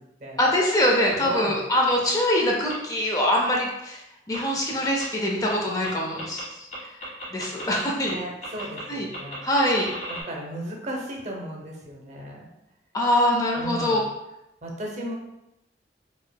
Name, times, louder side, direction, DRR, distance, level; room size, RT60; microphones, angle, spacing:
voice 1, 0.4-4.0 4.3-6.7 7.3-8.2 8.9-9.1 9.4-9.9 12.9-14.0, left 1 dB, 20° left, -2 dB, 0.4 m, -23 dB
voice 2, 1.2-1.6 8.0-9.4 10.1-12.5 13.6-14.1 14.6-15.1, right 1 dB, 40° right, 0 dB, 0.7 m, -35 dB
sound 1, 1.9-2.0 2.7-2.8 3.5-3.6 4.3-4.4 5.0-5.1 5.5-5.6 5.8-5.9 6.2-6.4 6.7-7.8 8.1-8.2 8.4-8.8 9.1-10.2, equal, 45° left, 1.4 m, -35 dB
4.7 x 2.7 x 2.2 m, 0.89 s
head